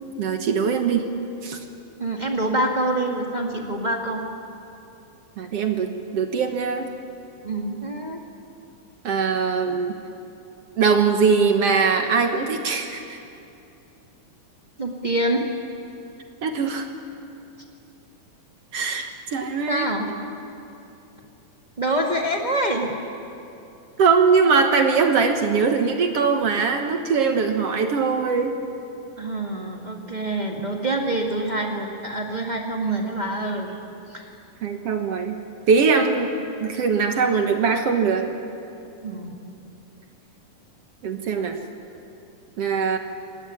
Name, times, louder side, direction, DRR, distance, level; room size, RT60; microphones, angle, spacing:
voice 1, 0.2-1.1 1.4-1.6 5.4-6.9 9.0-9.9 10.8-13.2 16.4-16.9 18.7-19.9 24.0-28.6 34.6-35.4 35.7-36.3 36.6-38.4 41.0-41.6 42.6-43.0, right 5 dB, 60° right, 5 dB, 1.7 m, -21 dB
voice 2, 2.0-4.2 7.4-8.2 14.8-15.5 19.7-20.1 21.8-22.9 29.2-33.8 34.1-34.4 39.0-39.4, right 1 dB, 25° right, 0 dB, 0.8 m, -26 dB
26.5 x 17.0 x 10.0 m, 2.8 s
omnidirectional pair, 4.3 m